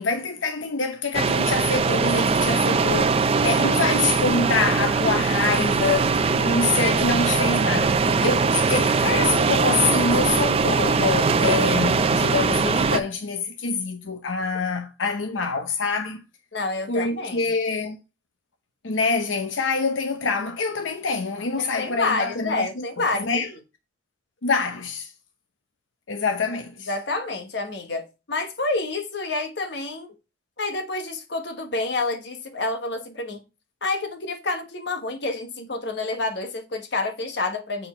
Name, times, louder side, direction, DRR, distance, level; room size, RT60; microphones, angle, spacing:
voice 1, 0.0-16.2 16.9-18.0 18.8-23.5 24.4-25.1 26.1-26.9, left 4 dB, 85° left, 0.8 m, -26 dB
sound 1, 1.1-13.0, right 4 dB, 30° right, 0.4 m, -21 dB
voice 2, 16.5-17.5 21.6-23.4 26.9-30.1 30.6-33.4 33.8-37.9, left 3 dB, 60° left, 1.2 m, -28 dB
7.8 x 4.3 x 4.4 m
head